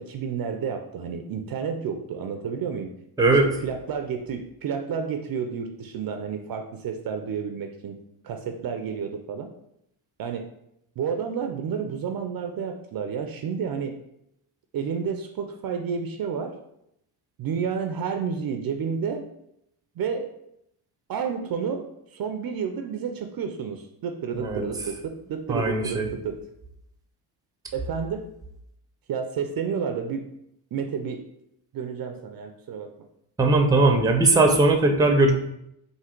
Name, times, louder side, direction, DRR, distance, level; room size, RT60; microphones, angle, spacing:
voice 1, 0.0-2.9 3.3-8.0 8.2-9.5 10.2-10.5 11.0-14.0 14.7-16.5 17.4-19.3 20.0-20.3 21.1-26.4 27.7-28.3 29.1-30.3 30.7-31.2 31.7-32.9, right 6 dB, 50° right, 6 dB, 0.5 m, -30 dB
voice 2, 25.5-26.1 33.4-35.3, right 2 dB, 10° right, 4 dB, 0.6 m, -19 dB
3.8 x 2.7 x 4.4 m, 0.77 s
cardioid pair, 90°, 47 cm